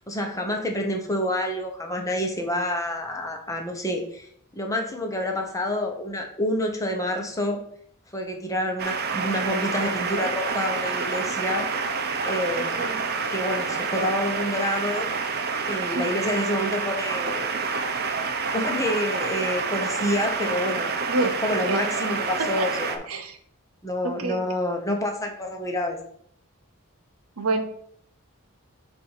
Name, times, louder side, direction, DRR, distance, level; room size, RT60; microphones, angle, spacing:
voice 1, 0.0-7.6 8.1-11.7 12.2-13.0 13.3-15.1 15.6-17.5 18.5-20.9 21.2-23.0 23.8-26.0, left 1 dB, 15° left, 3 dB, 0.9 m, -28 dB
sound 1, 8.8-23.0, right 5 dB, 45° right, 0.7 m, -28 dB
voice 2, 12.6-13.1 15.9-16.1 21.1-21.3 21.7-21.8 22.6-22.7 23.1-23.4 24.0-24.4 27.4-27.6, right 2 dB, 85° right, 7 dB, 0.9 m, -27 dB
7.4 x 2.7 x 5.6 m, 0.65 s
head